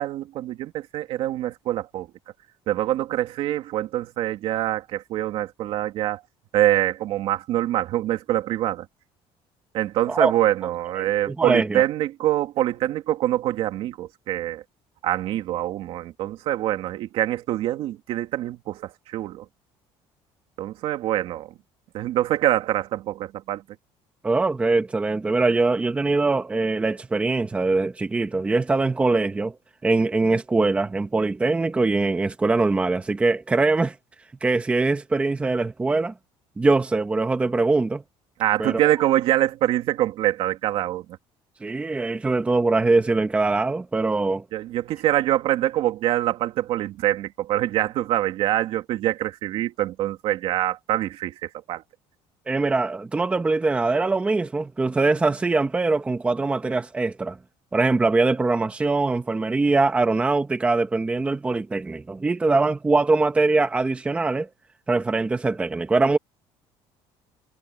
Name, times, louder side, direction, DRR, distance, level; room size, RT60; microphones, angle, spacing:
voice 1, 0.0-2.1 2.7-6.2 6.5-8.9 9.7-14.6 15.0-19.4 20.6-21.5 21.9-23.6 38.4-41.0 44.5-51.8, right 14 dB, 60° right, 2.5 m, -25 dB
voice 2, 11.0-11.8 24.2-29.5 29.8-34.0 34.4-36.1 36.6-38.0 38.6-38.8 41.6-44.4 52.5-57.4 57.7-64.5 64.9-66.2, right 3 dB, 10° right, 1.0 m, -22 dB
cardioid pair, 165°, 11 cm